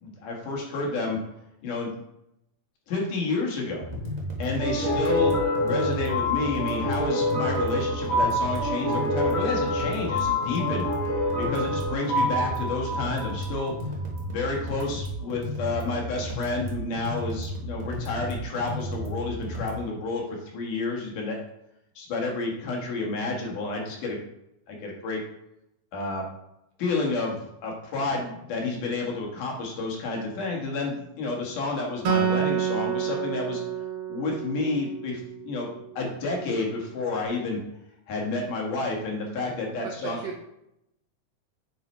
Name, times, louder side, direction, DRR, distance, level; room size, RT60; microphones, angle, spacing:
voice 1, 0.0-1.2 1.6-1.9 2.9-3.9 4.4-13.7 14.3-21.5 22.0-24.2 24.7-25.2 25.9-26.2 26.8-27.4 27.6-33.6 34.1-35.7 36.0-37.6 38.1-40.2, left 3 dB, 75° left, -1 dB, 3.1 m, -30 dB
sound 1, 3.8-19.8, equal, 35° right, 0.6 m, -34 dB
sound 2, 4.6-13.8, left 1 dB, 30° left, 2.5 m, -27 dB
Acoustic guitar, 32.0-35.5, right 8 dB, 60° right, 1.5 m, -28 dB
voice 2, 39.8-40.5, right 6 dB, 80° right, 1 dB, 1.4 m, -37 dB
9.2 x 4.2 x 4.5 m, 0.83 s
omnidirectional pair, 3.7 m